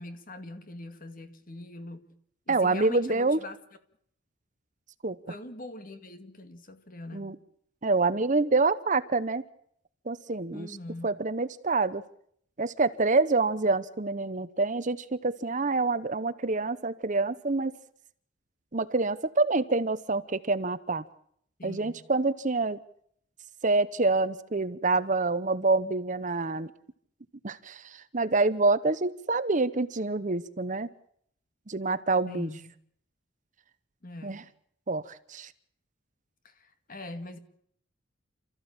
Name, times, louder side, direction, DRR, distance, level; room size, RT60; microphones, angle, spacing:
voice 1, 0.0-2.1 2.5-3.6 5.3-7.3 10.5-11.2 21.6-22.0 32.3-32.7 34.0-34.5 36.4-37.4, left 2 dB, 40° left, 2.1 m, -42 dB
voice 2, 2.5-3.4 5.0-5.2 7.1-7.3 7.8-9.4 10.1-10.8 11.0-12.0 12.6-17.7 18.7-21.0 21.6-22.8 23.6-26.7 27.4-30.9 31.7-32.5 34.2-34.4 34.9-35.5, right 3 dB, 40° right, 0.9 m, -27 dB
28.5 x 14.5 x 8.8 m
head